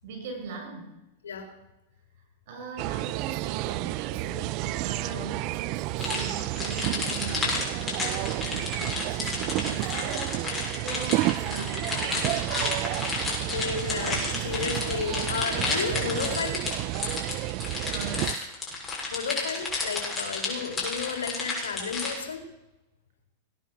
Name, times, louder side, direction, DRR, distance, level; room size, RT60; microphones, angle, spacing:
voice 1, 0.0-1.0 2.5-13.3 17.8-18.5, right 3 dB, 65° right, 3 dB, 7.5 m, -40 dB
sound 1, 2.8-18.4, right 19 dB, 50° right, 0.4 m, -31 dB
sound 2, 6.0-22.1, left 3 dB, 20° left, 6.9 m, -31 dB
voice 2, 13.5-16.6 19.1-22.4, left 5 dB, 85° left, 4 dB, 3.9 m, -32 dB
19.0 x 9.9 x 7.4 m, 0.94 s
hypercardioid pair, 110°, 0 cm